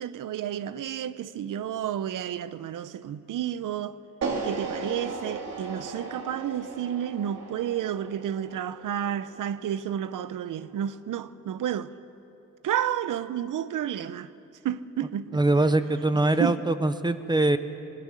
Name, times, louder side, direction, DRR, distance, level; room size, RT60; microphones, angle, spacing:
voice 1, 0.0-4.0 4.4-11.9 12.6-14.3 14.6-15.4 16.4-16.6, right 10 dB, 75° right, 0.8 m, -31 dB
sound 1, 4.2-10.4, right 3 dB, 55° right, 2.8 m, -36 dB
voice 2, 15.3-17.6, right 2 dB, 15° right, 0.7 m, -23 dB
21.0 x 18.5 x 9.8 m
cardioid pair, 130°, 32 cm